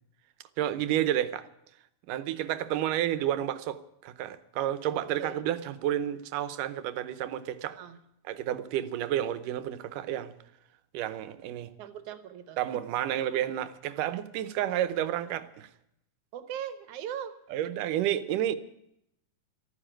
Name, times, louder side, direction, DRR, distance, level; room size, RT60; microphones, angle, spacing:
voice 1, 0.6-1.5 2.1-7.8 8.3-10.3 10.9-11.7 12.6-15.7 17.5-18.6, right 11 dB, 90° right, 2.4 m, -30 dB
voice 2, 4.9-5.4 7.7-8.0 11.8-12.8 16.3-17.4 17.8-17.9, right 9 dB, 70° right, 2.4 m, -40 dB
13.5 x 9.9 x 8.9 m
omnidirectional pair, 3.7 m